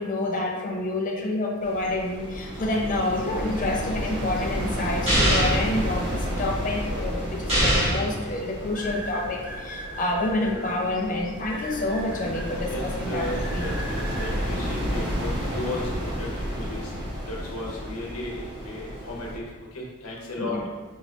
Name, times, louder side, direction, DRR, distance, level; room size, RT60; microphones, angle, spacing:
voice 1, 0.0-13.7 20.4-20.6, left 2 dB, 40° left, 0 dB, 0.5 m, -28 dB
sound 1, 1.6-19.4, equal, 55° right, 0.8 m, -32 dB
sound 2, 5.1-5.7 7.5-8.1, equal, 30° right, 1.4 m, -21 dB
sound 3, 8.7-10.7 11.4-12.5 13.2-14.3, equal, 5° right, 0.6 m, -38 dB
voice 2, 12.7-15.8 16.2-16.9 17.3-19.5 19.7-20.6, left 1 dB, 80° left, -3 dB, 1.0 m, -35 dB
4.5 x 2.6 x 3.1 m, 1.3 s
head